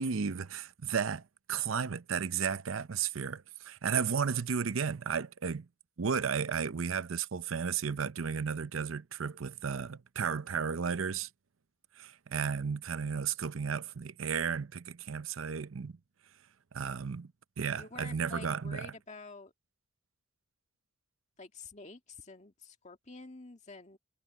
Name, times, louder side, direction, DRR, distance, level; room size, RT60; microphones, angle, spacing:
voice 1, 0.0-5.7 6.0-11.3 12.0-16.0 16.7-17.3 17.6-18.9, right 6 dB, 75° right, 0.6 m, -33 dB
voice 2, 17.8-19.5 21.4-24.0, left 3 dB, 35° left, 2.0 m, -49 dB
head